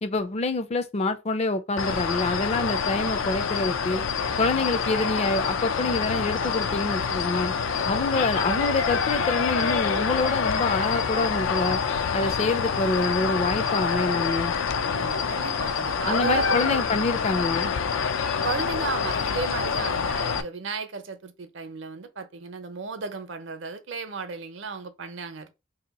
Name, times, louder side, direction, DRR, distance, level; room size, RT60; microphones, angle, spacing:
voice 1, 0.0-4.0 4.4-7.5 7.9-11.8 12.1-14.5 16.1-17.7, left 3 dB, 35° left, 0.4 m, -26 dB
sound 1, 1.8-20.4, left 6 dB, 90° left, 0.4 m, -26 dB
voice 2, 14.9-16.8 18.4-25.5, right 4 dB, 65° right, 0.6 m, -34 dB
2.9 x 2.8 x 4.0 m
head